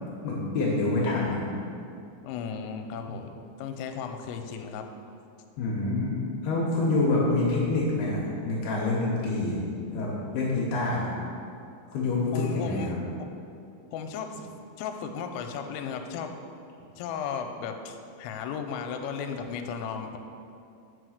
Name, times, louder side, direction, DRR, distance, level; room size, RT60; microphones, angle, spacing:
voice 1, 0.2-1.4 5.6-6.2 6.4-9.6 9.9-11.1 11.9-12.9, left 2 dB, 70° left, -4 dB, 2.5 m, -26 dB
voice 2, 2.2-3.3 3.6-4.8 12.3-13.3 13.9-14.5 14.8-16.3 17.0-20.2, left 6 dB, 85° left, 6 dB, 3.3 m, -35 dB
8.0 x 5.4 x 6.4 m, 2.6 s
omnidirectional pair, 5.7 m